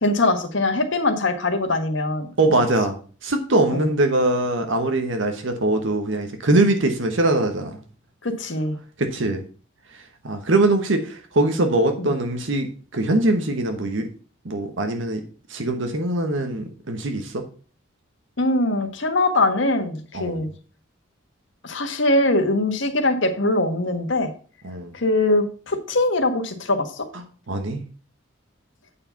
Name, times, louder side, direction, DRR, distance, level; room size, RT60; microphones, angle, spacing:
voice 1, 0.0-2.3 3.7-3.9 8.2-8.8 12.0-12.1 18.4-20.5 21.6-24.3 24.9-27.1, left 2 dB, 65° left, 6 dB, 1.4 m, -22 dB
voice 2, 2.4-7.8 9.0-9.4 9.9-14.1 14.4-15.2 15.5-17.4 20.1-20.4 24.6-24.9 27.5-27.8, right 2 dB, 70° right, 5 dB, 1.1 m, -22 dB
8.6 x 4.8 x 5.6 m, 0.39 s
head